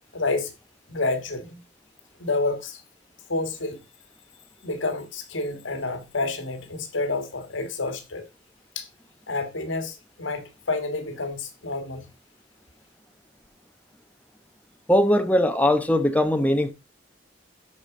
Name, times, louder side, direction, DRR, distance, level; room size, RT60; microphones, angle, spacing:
voice 1, 0.1-0.5 0.9-1.6 2.2-2.8 3.3-3.8 4.6-8.2 8.8-8.9 9.3-12.0, left 3 dB, 85° left, 1.8 m, -29 dB
voice 2, 14.9-16.7, left 1 dB, 10° left, 0.9 m, -20 dB
13.0 x 5.0 x 3.8 m
head